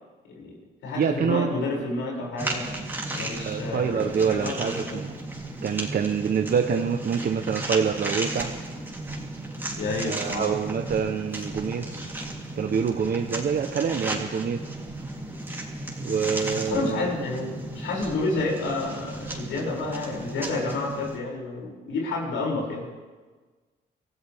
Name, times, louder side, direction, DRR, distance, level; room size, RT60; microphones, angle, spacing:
voice 1, 0.3-2.7 3.1-5.0 9.8-10.5 16.5-22.8, left 3 dB, 85° left, -2 dB, 6.6 m, -30 dB
voice 2, 1.0-1.5 3.4-5.1 5.6-8.5 10.0-11.9 12.6-14.6 16.0-17.1, right 6 dB, 50° right, 5 dB, 1.0 m, -26 dB
Walking in the Woods, 2.4-21.2, right 1 dB, 10° right, 3.5 m, -34 dB
25.5 x 15.5 x 3.6 m, 1.3 s
cardioid pair, 90°, 20 cm